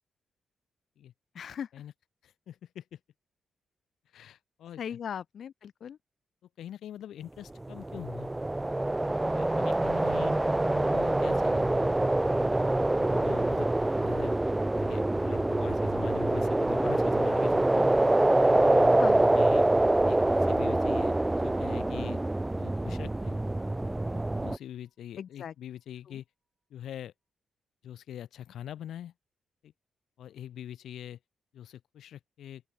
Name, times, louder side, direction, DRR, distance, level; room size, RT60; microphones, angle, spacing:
voice 1, 1.3-1.7 4.8-6.0 19.0-19.3 20.2-20.4 25.2-25.5, left 8 dB, 70° left, 0.4 m, -38 dB
voice 2, 2.2-3.0 4.1-5.0 6.6-8.3 9.3-10.4 10.7-11.7 12.3-12.5 12.9-13.7 14.0-14.4 14.8-17.9 18.4-18.9 19.2-19.7 20.1-22.2 22.6-23.4 24.1-26.2 26.7-27.1 27.8-29.1 29.6-29.7 30.2-31.2 31.5-32.6, left 10 dB, 85° left, 2.9 m, -43 dB
sound 1, 7.6-24.6, right 2 dB, 15° right, 0.3 m, -25 dB
Musical instrument, 12.8-22.4, right 3 dB, 30° right, 4.4 m, -50 dB
open air
cardioid pair, 85°, 0 cm